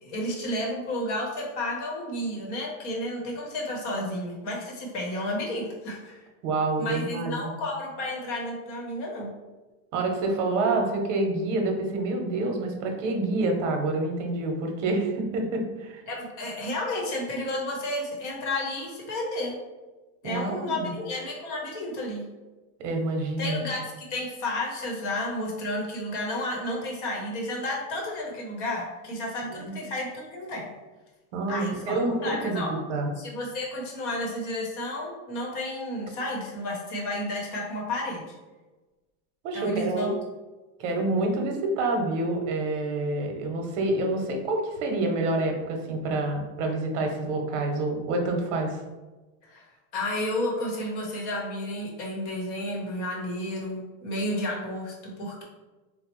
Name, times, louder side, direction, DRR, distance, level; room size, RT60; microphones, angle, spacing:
voice 1, 0.0-6.2 6.8-9.3 16.1-19.5 20.2-22.2 23.4-30.7 31.5-32.7 33.2-38.4 39.5-40.1 49.4-49.7 49.9-55.4, left 1 dB, 55° left, -1 dB, 0.9 m, -32 dB
voice 2, 6.4-7.5 9.9-16.0 20.2-20.9 22.8-23.7 29.5-29.8 31.3-33.1 39.4-40.1 40.8-48.8, right 2 dB, 60° right, 3 dB, 0.8 m, -27 dB
4.2 x 2.0 x 2.9 m, 1.2 s
supercardioid pair, 180°, 43 cm